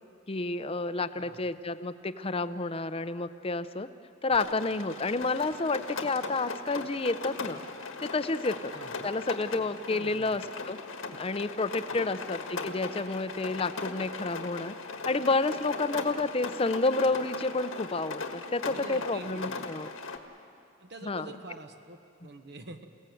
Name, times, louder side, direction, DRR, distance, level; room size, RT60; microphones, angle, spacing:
voice 1, 0.3-3.9 4.2-7.6 8.0-8.7 9.0-10.4 10.7-10.8 11.2-14.7 15.1-19.9 21.0-21.3, left 3 dB, 30° left, 12 dB, 0.6 m, -30 dB
Rain, 4.3-20.2, left 4 dB, 80° left, 1.7 m, -39 dB
voice 2, 8.7-9.1 9.9-10.4 18.7-19.6 20.8-22.9, right 2 dB, 55° right, 7 dB, 1.2 m, -45 dB
28.5 x 17.5 x 7.8 m, 2.6 s
head